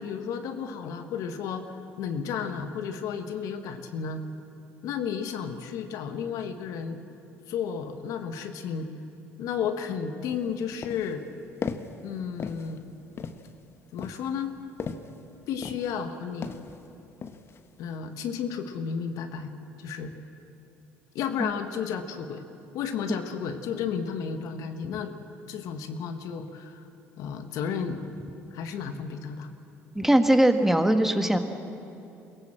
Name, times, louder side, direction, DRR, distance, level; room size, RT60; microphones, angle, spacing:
voice 1, 0.0-4.2 4.8-7.0 7.5-8.9 9.4-11.2 12.0-12.8 13.9-14.5 15.5-16.5 17.8-19.5 19.8-20.1 21.1-22.5 22.7-25.1 25.5-26.8 27.2-28.0 28.5-29.5, left 7 dB, 70° left, 7 dB, 1.4 m, -32 dB
sound 1, 10.3-10.4 10.8-11.2 11.6-12.0 12.4-12.8 13.2-13.5 14.0-15.2 15.6-16.1 16.4-16.8 17.2-17.6, left 5 dB, 45° left, 1.1 m, -37 dB
voice 2, 29.9-31.4, right 1 dB, 5° right, 6 dB, 1.5 m, -21 dB
23.0 x 17.0 x 7.6 m, 2.8 s
supercardioid pair, 75°, 6 cm